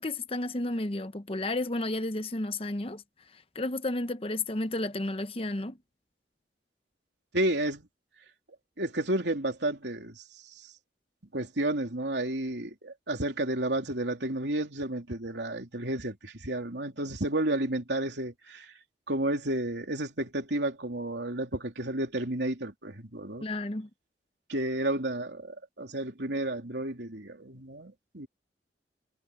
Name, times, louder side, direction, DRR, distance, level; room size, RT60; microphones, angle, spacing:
voice 1, 0.0-3.0 3.3-5.8 23.4-23.9, left 2 dB, 30° left, 0.8 m, -32 dB
voice 2, 7.3-7.9 8.8-10.2 10.5-10.7 11.3-18.7 19.1-23.5 24.5-28.3, right 1 dB, 75° right, 3.3 m, -31 dB
head